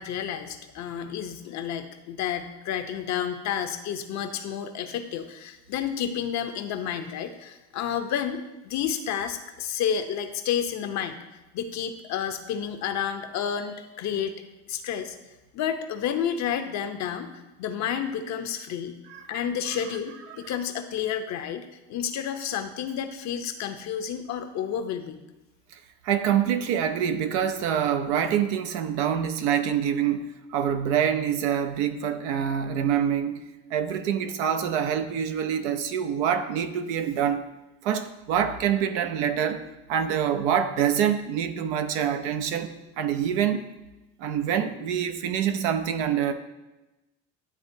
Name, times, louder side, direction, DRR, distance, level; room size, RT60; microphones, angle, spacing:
voice 1, 0.0-11.2 11.5-14.3 14.7-15.2 15.5-17.3 17.6-19.0 19.3-25.2, left 8 dB, 55° left, 7 dB, 0.7 m, -30 dB
voice 2, 19.1-19.4 26.0-33.4 33.7-37.5 37.8-39.6 39.9-43.6 44.2-46.3, right 8 dB, 85° right, 8 dB, 0.6 m, -26 dB
10.5 x 3.5 x 2.6 m, 1.0 s
supercardioid pair, 90°, 33 cm